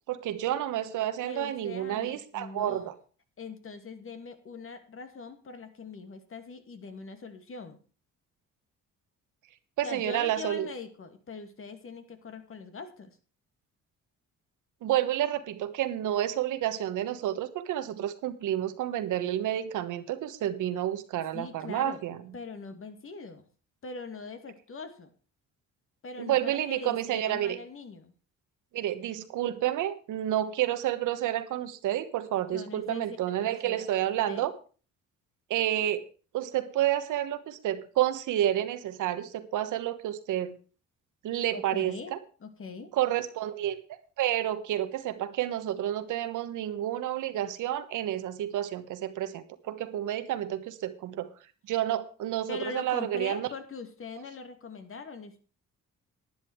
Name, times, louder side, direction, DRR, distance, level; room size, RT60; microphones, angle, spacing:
voice 1, 0.1-2.9 9.8-10.7 14.8-22.2 26.2-27.6 28.7-34.5 35.5-36.0 36.3-40.6 41.2-42.2 42.9-43.8 44.2-51.3 51.7-53.5, right 12 dB, 85° right, 11 dB, 1.4 m, -30 dB
voice 2, 1.2-2.9 3.4-7.8 9.8-13.2 21.3-22.0 22.3-23.5 23.8-25.1 26.0-28.1 32.5-34.5 41.5-42.1 42.4-42.9 52.5-55.4, left 4 dB, 45° left, 8 dB, 2.4 m, -42 dB
11.0 x 10.0 x 4.6 m, 0.38 s
cardioid pair, 90°, 30 cm